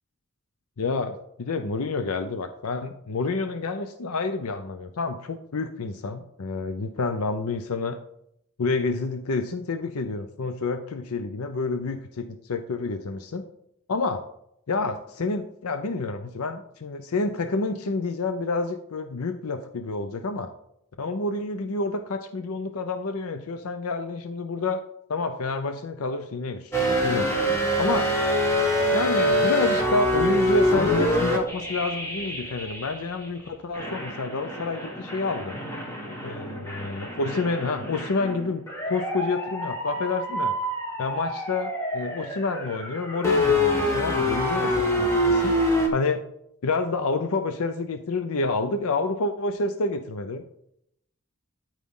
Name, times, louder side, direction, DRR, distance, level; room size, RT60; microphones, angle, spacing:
voice 1, 0.8-8.0 8.6-12.2 12.5-13.4 13.9-14.2 14.7-20.5 21.0-24.8 25.1-27.3 27.8-28.1 28.9-35.5 36.2-40.5 41.0-45.5 45.9-46.2 46.6-50.4, left 3 dB, 85° left, 8 dB, 0.6 m, -28 dB
sound 1, 26.7-33.3 33.7-45.9, equal, 10° left, 1.5 m, -26 dB
12.5 x 4.9 x 3.7 m, 0.75 s
head